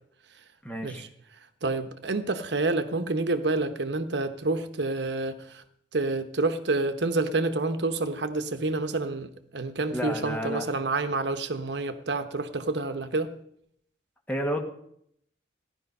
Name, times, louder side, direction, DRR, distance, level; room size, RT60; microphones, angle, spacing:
voice 1, 0.6-1.0 9.9-10.6 14.3-14.6, equal, 10° left, 2 dB, 1.7 m, -30 dB
voice 2, 1.6-5.6 5.9-13.3, right 3 dB, 70° right, 9 dB, 0.9 m, -28 dB
16.0 x 11.0 x 5.4 m, 0.72 s
head